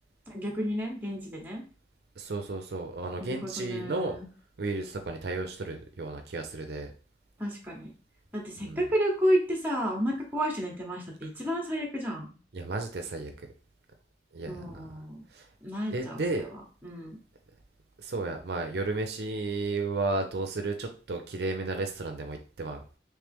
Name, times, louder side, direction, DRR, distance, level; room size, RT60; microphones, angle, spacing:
voice 1, 0.3-1.6 3.2-4.3 7.4-7.9 8.3-12.3 14.4-15.2 15.6-17.2, equal, 10° right, 0 dB, 0.9 m, -31 dB
voice 2, 2.2-4.2 4.6-6.9 8.6-8.8 12.5-13.3 14.3-14.6 15.3-15.5 15.9-16.5 18.0-22.8, right 3 dB, 60° right, 5 dB, 0.5 m, -33 dB
3.2 x 3.2 x 3.4 m, 0.38 s
head